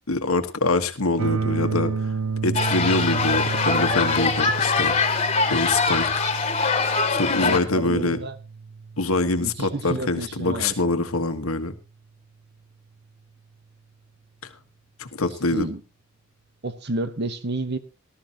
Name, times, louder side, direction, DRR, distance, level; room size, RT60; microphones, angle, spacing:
voice 1, 0.1-1.9 2.4-4.9 5.5-6.1 7.1-8.2 9.0-11.7 15.0-15.7, left 2 dB, 85° left, 1.5 m, -24 dB
sound 1, 1.2-11.1, right 5 dB, 85° right, 0.6 m, -31 dB
sound 2, 2.5-7.6, left 4 dB, 30° left, 2.0 m, -23 dB
voice 2, 7.4-8.3 9.4-10.9 15.5-15.8 16.6-17.8, right 2 dB, 50° right, 1.2 m, -30 dB
18.5 x 12.5 x 2.9 m
head